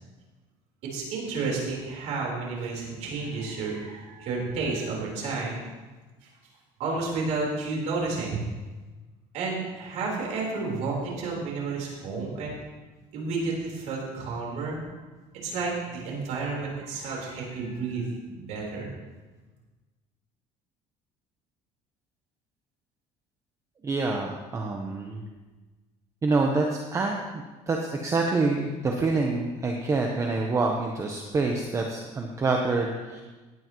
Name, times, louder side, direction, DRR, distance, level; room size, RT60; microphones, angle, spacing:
voice 1, 0.9-5.6 6.8-8.5 9.3-12.6 13.1-14.8 15.4-18.9, right 3 dB, 65° right, -2 dB, 4.2 m, -31 dB
voice 2, 23.8-25.2 26.2-26.6 26.9-33.2, right 3 dB, 20° right, 1 dB, 1.0 m, -27 dB
17.0 x 9.8 x 3.1 m, 1.2 s
cardioid pair, 140°, 13 cm